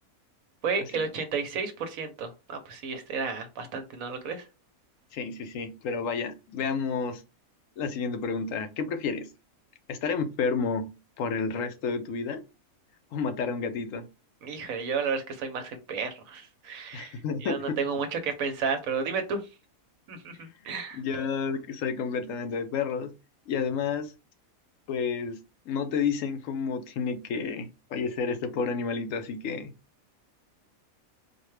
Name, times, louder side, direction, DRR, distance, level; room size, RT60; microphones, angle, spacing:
voice 1, 0.6-4.4 14.4-19.4 20.1-21.0, right 5 dB, 70° right, 1.1 m, -32 dB
voice 2, 5.1-7.2 7.8-9.3 9.9-12.4 13.1-14.1 16.9-17.8 20.9-23.1 23.5-24.1 24.9-29.7, left 5 dB, 70° left, 0.9 m, -30 dB
4.2 x 2.2 x 3.2 m
omnidirectional pair, 1.5 m